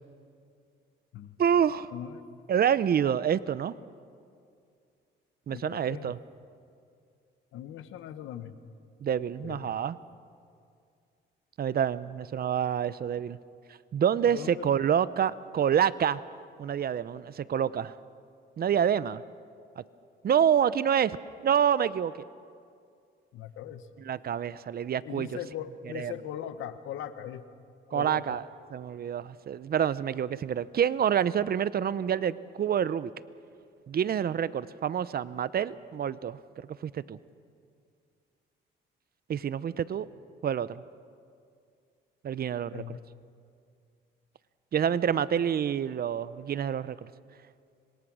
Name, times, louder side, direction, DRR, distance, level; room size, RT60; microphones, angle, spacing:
voice 1, 1.4-1.9 2.5-3.7 5.5-6.2 9.0-10.0 11.6-13.4 13.9-16.2 16.6-18.0 18.6-19.2 19.8-19.9 20.2-21.2 21.4-22.1 24.0-25.4 25.9-26.1 27.9-28.4 28.7-33.1 33.9-36.4 36.8-37.2 39.3-40.1 40.4-40.8 42.2-43.0 44.7-47.1, right 8 dB, 50° right, 17 dB, 0.7 m, -27 dB
voice 2, 1.9-2.3 5.5-6.1 7.5-8.6 9.4-9.7 14.3-14.7 23.3-23.9 25.0-27.4 27.9-28.4 42.7-43.0, left 10 dB, 85° left, 11 dB, 1.2 m, -40 dB
26.0 x 22.0 x 6.3 m, 2.3 s
cardioid pair, 90°, 20 cm